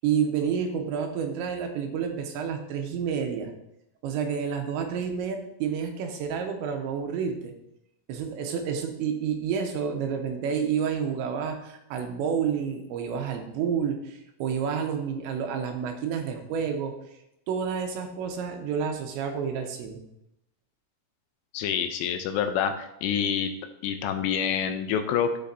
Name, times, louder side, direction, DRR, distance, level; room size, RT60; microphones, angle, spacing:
voice 1, 0.0-3.5 4.0-7.5 8.1-16.9 17.5-20.0, right 7 dB, 85° right, 4 dB, 3.2 m, -29 dB
voice 2, 21.5-23.5 23.8-25.4, left 8 dB, 80° left, 7 dB, 2.7 m, -27 dB
14.0 x 5.1 x 2.7 m, 0.83 s
omnidirectional pair, 5.1 m